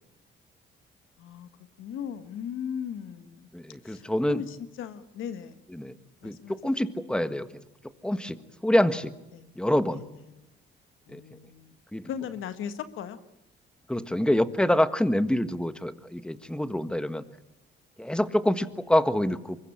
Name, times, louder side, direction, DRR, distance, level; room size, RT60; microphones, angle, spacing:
voice 1, 1.2-1.5 1.8-3.5 3.8-5.6 6.2-6.7 9.3-9.5 9.9-10.6 11.1-11.7 12.0-13.2, left 8 dB, 80° left, 11 dB, 1.6 m, -38 dB
voice 2, 3.5-4.4 5.8-5.9 6.2-6.4 6.6-7.6 8.0-8.4 8.6-9.1 9.6-10.0 11.1-11.2 11.9-12.1 13.9-17.2 18.0-19.6, left 1 dB, 5° left, 12 dB, 1.5 m, -26 dB
24.5 x 21.5 x 8.7 m, 0.89 s
cardioid pair, 90°, 20 cm